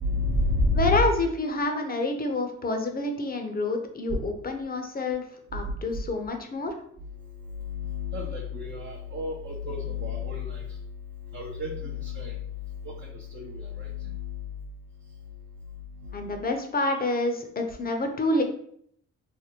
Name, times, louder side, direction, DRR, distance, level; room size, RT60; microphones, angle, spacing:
voice 1, 0.0-1.0 7.6-10.8 11.3-12.5 12.8-14.5 16.0-16.3, left 3 dB, 40° right, -1 dB, 0.6 m, -30 dB
voice 2, 0.7-5.2 5.5-6.7 16.1-18.4, left 2 dB, 30° left, 5 dB, 0.7 m, -28 dB
3.4 x 2.1 x 2.9 m, 0.67 s
supercardioid pair, 60°, 31 cm